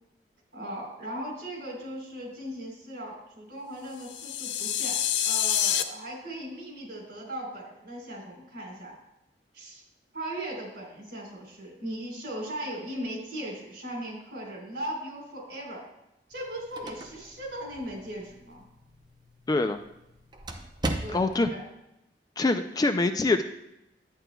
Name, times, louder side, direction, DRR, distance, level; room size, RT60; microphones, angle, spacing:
voice 1, 0.5-5.0 5.2-8.9 9.5-9.8 10.1-15.8 16.3-18.6 21.0-21.6, right 1 dB, 60° right, -2 dB, 3.4 m, -38 dB
sound 1, 4.0-5.8, left 10 dB, 80° left, 0.5 m, -27 dB
sound 2, 16.3-21.6, right 2 dB, 25° right, 0.6 m, -39 dB
voice 2, 19.5-19.8 21.1-21.5 22.4-23.4, left 2 dB, 20° left, 8 dB, 0.3 m, -24 dB
11.0 x 8.9 x 2.2 m, 0.87 s
head